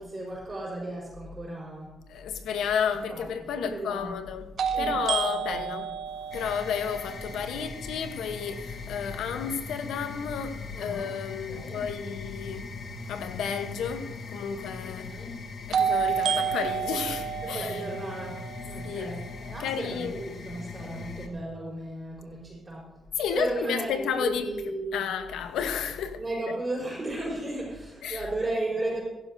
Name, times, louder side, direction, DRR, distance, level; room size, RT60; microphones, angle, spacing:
voice 1, 0.0-1.9 3.1-3.3 3.5-4.1 4.7-5.7 7.5-7.7 10.7-11.1 11.5-11.8 15.1-15.4 17.4-22.9 23.3-25.1 26.2-29.0, right 2 dB, 30° right, 4.9 m, -35 dB
voice 2, 2.1-15.2 15.7-17.8 18.8-19.1 19.6-20.2 23.2-24.5 24.9-26.2 28.0-28.2, left 7 dB, 85° left, 1.0 m, -32 dB
sound 1, 2.6-2.7 4.6-8.5 15.7-19.7, right 7 dB, 65° right, 0.7 m, -31 dB
sound 2, 6.3-21.3, left 4 dB, 60° left, 1.3 m, -40 dB
16.0 x 12.0 x 2.7 m
cardioid pair, 75°, 0 cm